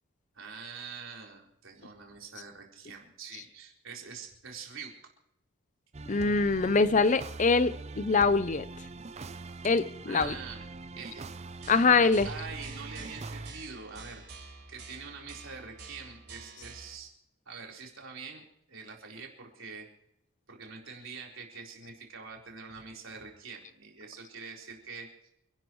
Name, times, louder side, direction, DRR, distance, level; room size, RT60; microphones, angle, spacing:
voice 1, 0.3-4.9 10.1-10.7 11.0-11.4 11.9-17.1 17.5-19.9 20.5-25.3, right 5 dB, 65° right, 0 dB, 4.1 m, -45 dB
sound 1, 5.9-13.5, right 3 dB, 30° right, 0.5 m, -43 dB
voice 2, 6.1-8.7 9.6-10.3 11.7-12.3, left 4 dB, 35° left, 14 dB, 0.6 m, -24 dB
sound 2, 11.6-17.0, right 4 dB, 50° right, 5.3 m, -49 dB
28.5 x 11.5 x 3.1 m, 0.77 s
head